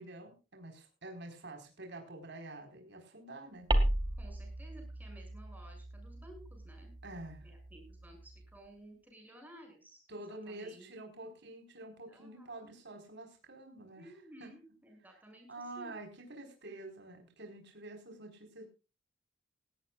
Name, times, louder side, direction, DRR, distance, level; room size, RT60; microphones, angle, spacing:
voice 1, 0.0-3.7 7.0-7.5 10.1-14.1 14.4-14.5 15.5-18.7, right 2 dB, 65° right, 3 dB, 4.7 m, -48 dB
sound 1, 3.7-8.5, right 1 dB, 25° right, 2.1 m, -36 dB
voice 2, 4.2-7.0 7.4-11.3 12.1-12.8 14.0-15.9, right 1 dB, 10° right, 2 dB, 7.2 m, -56 dB
18.5 x 16.5 x 2.4 m, 0.31 s
head